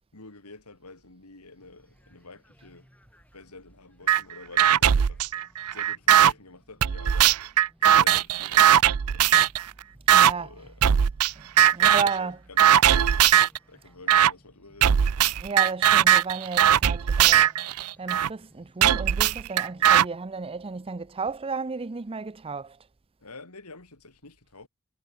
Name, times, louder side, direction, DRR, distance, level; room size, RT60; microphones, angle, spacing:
voice 1, 0.1-2.9 3.3-5.2 5.7-7.4 7.8-8.7 9.1-9.3 10.4-10.8 11.8-13.3 13.7-15.0 19.8-20.0 23.2-24.7, left 3 dB, 90° left, 3.5 m, -47 dB
sound 1, 1.6-18.8, equal, 5° left, 7.0 m, -61 dB
sound 2, 4.1-4.2 4.6-6.3 6.8-9.6 10.1-10.3 10.8-11.3 11.6-12.2 12.6-13.6 14.1-14.3 14.8-18.3 18.8-20.0, right 10 dB, 80° right, 0.5 m, -19 dB
voice 2, 10.1-10.5 11.4-12.6 15.4-17.6 18.0-22.8, right 4 dB, 25° right, 0.5 m, -33 dB
head